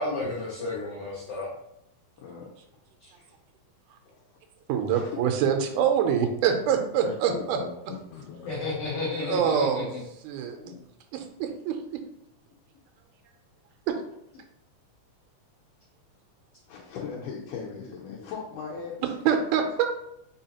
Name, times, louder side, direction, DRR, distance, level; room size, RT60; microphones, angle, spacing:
voice 1, 0.0-1.5 3.0-3.1 8.4-9.8 10.5-10.8 18.1-18.3, left 2 dB, 65° left, -7 dB, 1.6 m, -32 dB
voice 2, 2.2-2.5 3.1-3.3 4.1-4.2 4.9-5.1 7.0-8.6 16.7-19.1, left 6 dB, 85° left, -3 dB, 2.2 m, -39 dB
voice 3, 4.7-7.6 9.2-9.9 10.2-10.7 11.1-12.0 13.9-14.0 19.3-19.9, right 8 dB, 85° right, 5 dB, 2.1 m, -25 dB
4.7 x 3.7 x 2.8 m, 0.78 s
omnidirectional pair, 3.5 m